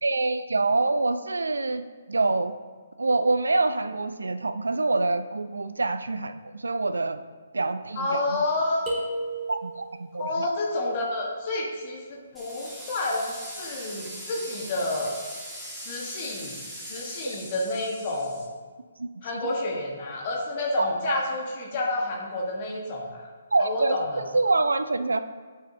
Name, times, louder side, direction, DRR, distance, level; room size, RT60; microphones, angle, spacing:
voice 1, 0.0-2.6 3.0-7.2 7.5-8.4 9.5-10.5 17.2-17.4 19.0-19.5 20.8-21.2 23.5-25.2, right 3 dB, 85° right, 11 dB, 0.3 m, -26 dB
voice 2, 7.9-8.9 10.2-15.1 15.8-16.6 16.9-18.5 19.2-23.3 23.6-24.3, left 2 dB, 40° left, -2 dB, 1.0 m, -29 dB
sound 1, 8.9-10.0, right 1 dB, 20° right, 1.7 m, -32 dB
sound 2, 12.3-18.5, equal, ahead, 1.4 m, -40 dB
9.0 x 4.9 x 2.6 m, 1.5 s
figure-of-eight pair, 140°, 0 cm